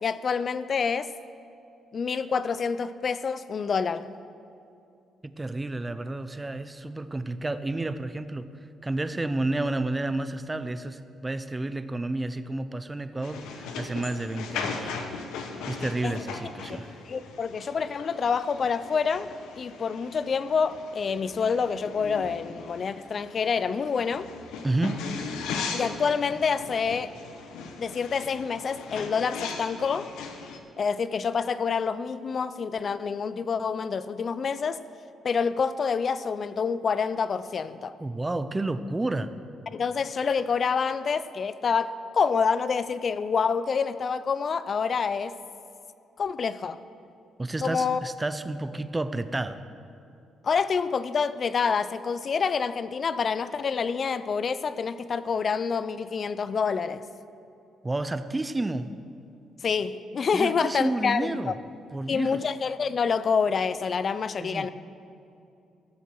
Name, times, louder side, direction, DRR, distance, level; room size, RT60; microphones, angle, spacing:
voice 1, 0.0-1.1 1.9-4.1 16.0-16.2 17.1-19.3 19.6-24.3 25.7-27.1 27.8-30.1 30.8-34.8 35.2-37.9 39.7-45.4 46.2-46.8 47.6-48.1 50.4-57.0 59.6-61.5 62.1-64.7, left 5 dB, 45° left, 14 dB, 0.4 m, -27 dB
voice 2, 5.3-8.5 8.8-14.9 15.7-16.9 24.6-25.0 38.0-39.3 47.4-49.6 57.8-59.0 60.3-61.5 61.9-62.4 64.4-64.7, right 2 dB, 15° right, 12 dB, 0.6 m, -30 dB
sound 1, 13.2-30.6, left 5 dB, 90° left, 0.9 m, -38 dB
13.5 x 7.1 x 6.0 m, 2.7 s
cardioid pair, 90°, 0 cm